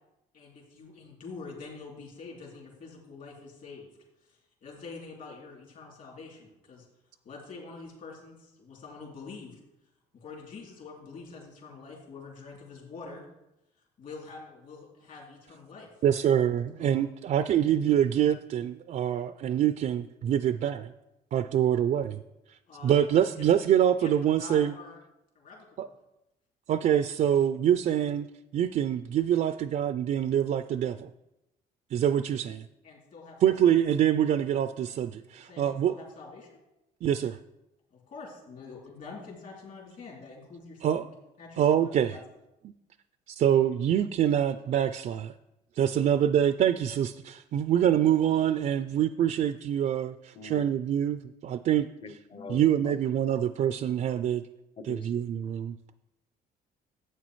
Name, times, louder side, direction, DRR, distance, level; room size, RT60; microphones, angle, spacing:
voice 1, 0.3-3.9 4.2-6.9 7.2-9.6 10.1-13.2 14.0-15.9 16.8-17.0 22.7-23.5 24.0-24.1 24.4-25.0 25.3-25.9 32.8-33.7 35.4-36.6 37.9-40.9 41.4-41.8 42.1-42.2, left 4 dB, 55° left, -2 dB, 3.0 m, -46 dB
voice 2, 16.0-20.9 21.3-22.2 22.8-24.7 25.8-25.9 26.7-28.3 28.5-31.1 31.9-32.6 33.4-35.9 37.0-37.4 40.8-41.0 41.6-42.2 43.3-45.2 45.8-51.9 52.5-54.4 54.9-55.8, right 10 dB, 50° right, 11 dB, 0.4 m, -25 dB
voice 3, 50.3-50.7 52.0-53.0 54.8-55.1, left 3 dB, 30° left, 11 dB, 0.7 m, -43 dB
11.0 x 8.3 x 3.1 m, 0.92 s
cardioid pair, 110°, 17 cm